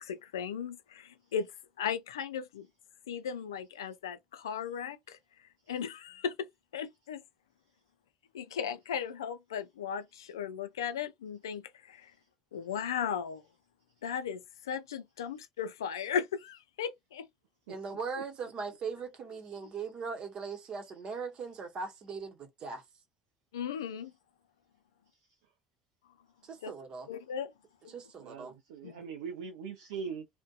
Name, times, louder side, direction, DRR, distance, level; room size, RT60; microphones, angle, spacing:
voice 1, 0.0-1.5 1.8-2.7 3.1-5.2 5.7-6.5 6.7-7.2 8.3-12.1 12.5-13.4 14.0-17.3 23.5-24.1 26.6-26.7 27.1-27.5 28.8-29.0, left 7 dB, 80° left, 0.3 m, -36 dB
voice 2, 17.7-22.8 26.4-27.1 27.9-28.5 29.6-29.7, right 5 dB, 45° right, 0.9 m, -40 dB
voice 3, 28.2-30.3, right 6 dB, 75° right, 0.4 m, -41 dB
2.6 x 2.1 x 2.2 m
hypercardioid pair, 60°, 2 cm